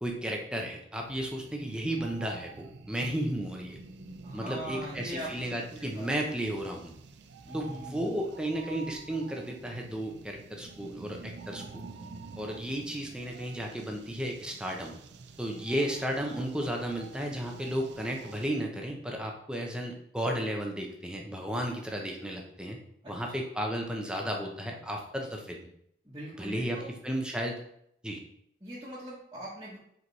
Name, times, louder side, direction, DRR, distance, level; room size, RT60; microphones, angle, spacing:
voice 1, 0.0-3.8 4.3-6.9 7.5-11.8 12.3-15.0 15.4-22.8 23.1-25.7 26.4-26.8 27.0-27.6 28.0-28.2, right 1 dB, 5° right, 1 dB, 0.8 m, -33 dB
sound 1, 1.0-18.5, right 4 dB, 85° right, 0.5 m, -48 dB
voice 2, 4.2-5.3 5.8-6.1 7.4-8.0 23.0-23.1 26.0-26.9 28.6-29.8, right 1 dB, 20° right, -10 dB, 1.4 m, -41 dB
5.0 x 4.7 x 4.1 m, 0.71 s
head